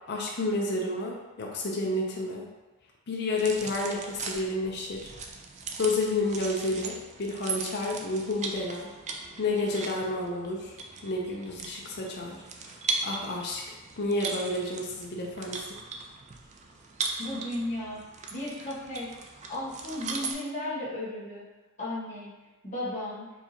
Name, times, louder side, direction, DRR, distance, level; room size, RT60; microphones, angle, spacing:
voice 1, 0.1-2.5 3.1-5.1 5.8-8.9 9.4-10.7 11.0-12.4 12.6-13.6 14.0-15.7, left 2 dB, 50° left, -2 dB, 0.6 m, -30 dB
sound 1, 3.4-20.3, right 4 dB, 30° right, 0.4 m, -38 dB
voice 2, 17.2-18.0 18.3-21.4 21.8-22.3 22.6-23.3, left 1 dB, 35° left, -8 dB, 1.3 m, -35 dB
4.5 x 2.8 x 2.8 m, 1.1 s
head